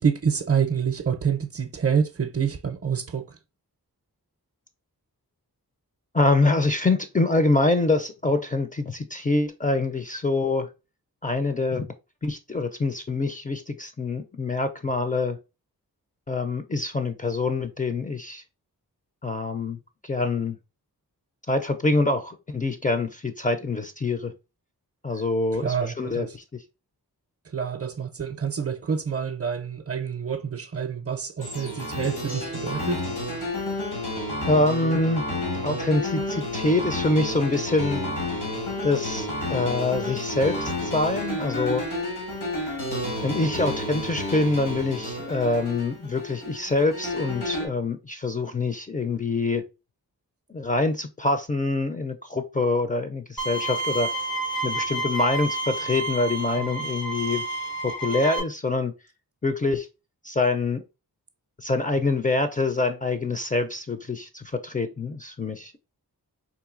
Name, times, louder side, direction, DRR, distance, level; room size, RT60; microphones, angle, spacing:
voice 1, 0.0-3.4 25.5-26.4 27.5-33.1 56.6-56.7, right 7 dB, 40° right, 0.5 m, -27 dB
voice 2, 6.1-10.7 11.2-11.9 12.2-15.4 16.3-18.4 19.2-19.8 20.0-20.6 21.5-24.3 25.0-26.4 34.5-35.2 35.6-38.0 38.8-41.8 43.2-49.6 50.5-54.1 54.6-57.4 57.8-58.9 59.4-59.9 60.2-60.8 61.6-65.8, left 2 dB, 20° left, 0.4 m, -25 dB
sound 1, 31.4-47.7, left 1 dB, 85° left, 1.5 m, -31 dB
Bowed string instrument, 53.4-58.4, right 2 dB, 65° left, 0.9 m, -30 dB
3.9 x 2.6 x 2.4 m
cardioid pair, 50°, 38 cm